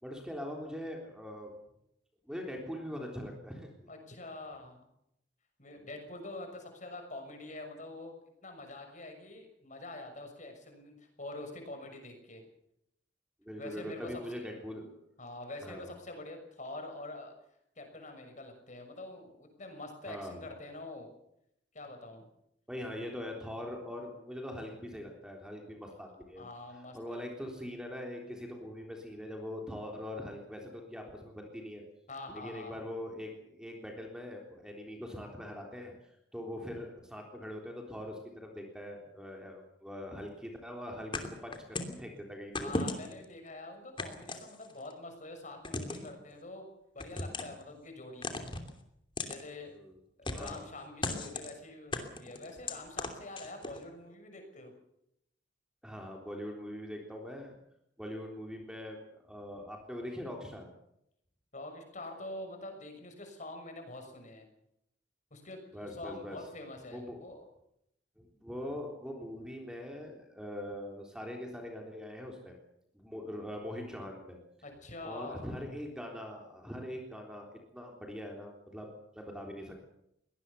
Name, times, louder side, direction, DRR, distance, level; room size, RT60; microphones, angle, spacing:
voice 1, 0.0-1.5 2.3-3.7 5.7-5.8 13.4-15.0 15.6-15.9 20.1-20.4 22.7-26.5 26.9-31.8 32.3-35.9 36.3-42.7 49.7-49.9 50.3-50.6 55.8-57.6 58.0-60.7 65.7-66.4 66.9-67.2 68.2-72.6 72.9-74.4 75.0-79.9, left 1 dB, 5° right, 1 dB, 3.6 m, -42 dB
voice 2, 3.9-4.8 5.6-8.1 8.4-12.4 13.6-14.6 15.2-17.3 17.8-21.1 21.7-22.3 25.8-26.0 26.4-27.2 32.1-32.8 42.6-46.7 46.9-48.3 49.3-49.7 50.3-54.7 61.5-64.5 65.3-67.4 74.6-75.4, left 2 dB, 45° left, 5 dB, 6.4 m, -45 dB
sound 1, 41.1-42.0 42.6-43.3 44.0-44.9 45.6-46.1 47.0-47.6 48.2-48.7 49.2-49.4 50.3-50.7 51.0-51.5 51.9-53.8, left 2 dB, 30° left, 2.9 m, -37 dB
23.5 x 19.0 x 7.0 m, 0.78 s
head